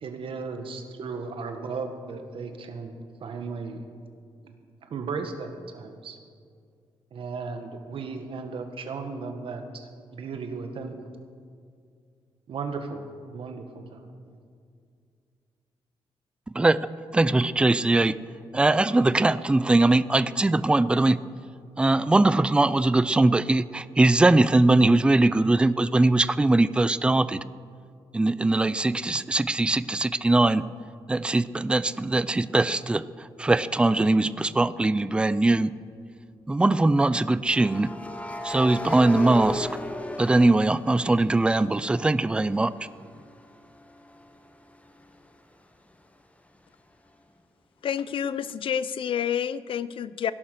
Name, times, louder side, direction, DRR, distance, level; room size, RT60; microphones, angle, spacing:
voice 1, 0.0-3.9 4.4-4.5 4.8-6.2 7.1-11.0 12.5-14.4, right 4 dB, 65° right, 6 dB, 1.7 m, -36 dB
voice 2, 17.1-18.1 18.5-21.2 21.8-27.4 28.1-30.6 31.1-35.7 36.5-37.9 38.4-39.7 40.2-42.7, right 2 dB, 10° right, 16 dB, 0.4 m, -21 dB
sound 1, 34.2-34.4 37.5-41.4 41.8-45.4, left 1 dB, 15° left, 1.1 m, -36 dB
voice 3, 47.8-50.3, left 8 dB, 60° left, 16 dB, 0.6 m, -29 dB
16.5 x 11.5 x 6.6 m, 2.3 s
wide cardioid pair, 130°, 10 cm